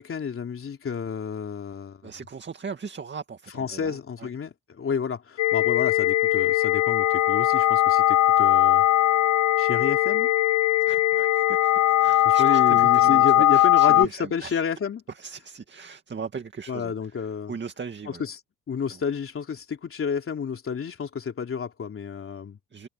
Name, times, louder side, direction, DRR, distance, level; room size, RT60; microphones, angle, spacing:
voice 1, 0.0-2.1 3.5-8.8 9.6-10.3 12.2-15.0 16.7-17.5 18.2-18.4 18.7-22.6, left 6 dB, 45° left, 3.4 m, -30 dB
voice 2, 2.0-4.3 10.8-14.6 15.1-18.2 18.9-19.0 22.7-22.9, right 5 dB, 35° right, 2.2 m, -38 dB
sound 1, 5.4-14.1, left 14 dB, 65° left, 0.6 m, -20 dB
cardioid pair, 90°, 30 cm